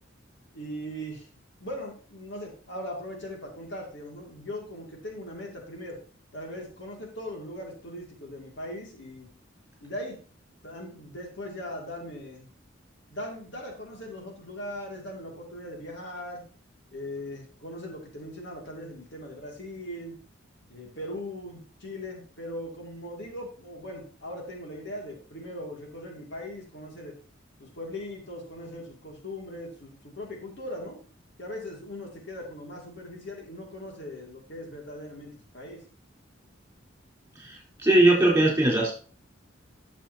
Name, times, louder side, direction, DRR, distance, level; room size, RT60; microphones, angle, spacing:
voice 1, 0.5-1.3 1.6-6.0 6.3-9.3 9.8-10.2 10.6-12.5 13.1-16.4 16.9-20.2 20.7-27.1 27.6-31.0 31.4-35.8, left 1 dB, 65° left, 0 dB, 2.5 m, -39 dB
voice 2, 37.4-38.9, right 1 dB, 15° right, -4 dB, 4.2 m, -21 dB
11.5 x 6.9 x 2.8 m, 0.40 s
head